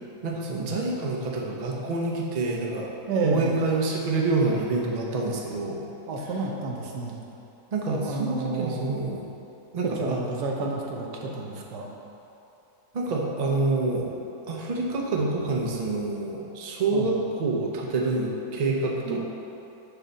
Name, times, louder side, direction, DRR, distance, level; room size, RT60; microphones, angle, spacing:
voice 1, 0.2-2.9 3.2-5.8 7.7-9.2 9.7-10.2 12.9-14.1 14.5-19.2, right 3 dB, 55° right, -2 dB, 0.4 m, -27 dB
voice 2, 3.1-3.6 6.1-7.2 8.0-9.0 9.8-11.9 16.9-17.1 19.0-19.2, right 3 dB, 75° right, -1 dB, 1.4 m, -30 dB
6.3 x 4.0 x 5.5 m, 2.9 s
omnidirectional pair, 1.8 m